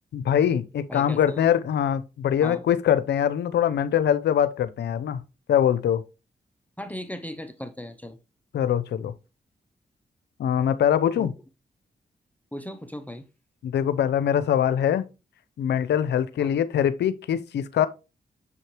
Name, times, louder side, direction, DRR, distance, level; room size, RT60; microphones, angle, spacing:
voice 1, 0.1-5.2 5.5-6.0 8.5-9.1 10.4-11.3 13.6-15.0 15.6-17.9, left 9 dB, 85° left, 0.6 m, -23 dB
voice 2, 0.9-1.5 2.4-2.6 6.8-8.2 11.2-11.3 12.5-13.2 16.4-16.5, equal, 10° left, 0.9 m, -37 dB
7.1 x 4.5 x 3.2 m
supercardioid pair, 45°, 17 cm